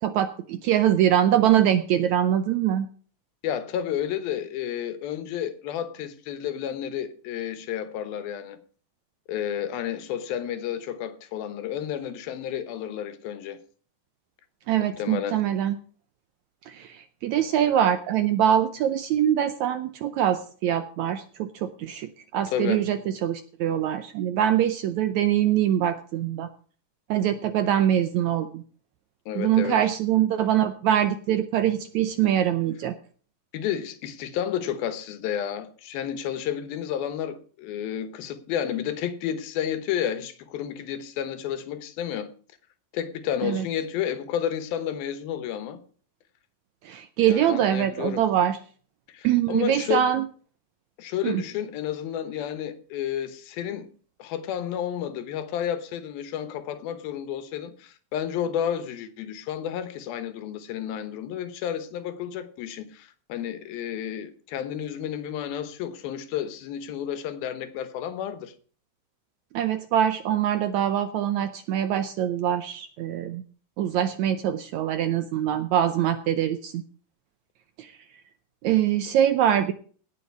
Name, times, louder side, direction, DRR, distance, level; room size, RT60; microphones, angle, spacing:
voice 1, 0.0-2.9 14.7-15.8 16.7-26.5 27.1-28.6 29.3-32.9 43.4-43.6 46.8-48.6 49.2-50.3 51.2-51.4 69.5-73.4 73.8-76.8 77.8-77.9 78.6-79.7, right 10 dB, 85° right, 1.6 m, -23 dB
voice 2, 3.4-8.6 9.3-13.6 15.0-15.4 22.5-22.8 29.3-29.8 33.5-42.3 42.9-45.8 47.2-48.3 49.1-50.1 51.0-53.9 54.2-68.5, left 9 dB, 90° left, 3.0 m, -31 dB
18.0 x 6.9 x 4.6 m
omnidirectional pair, 4.1 m